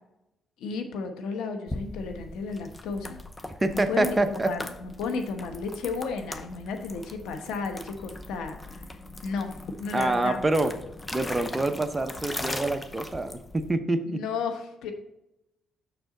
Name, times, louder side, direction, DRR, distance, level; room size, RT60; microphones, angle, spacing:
voice 1, 0.6-3.2 3.7-8.8 9.2-10.4 14.1-14.9, left 4 dB, 90° left, 6 dB, 1.0 m, -33 dB
sound 1, 1.7-13.7, left 2 dB, 20° left, 0.7 m, -40 dB
voice 2, 3.6-4.5 9.9-10.7 11.1-14.2, right 2 dB, 15° right, 7 dB, 0.8 m, -26 dB
6.9 x 6.2 x 3.8 m, 0.88 s
cardioid pair, 90°, 0 cm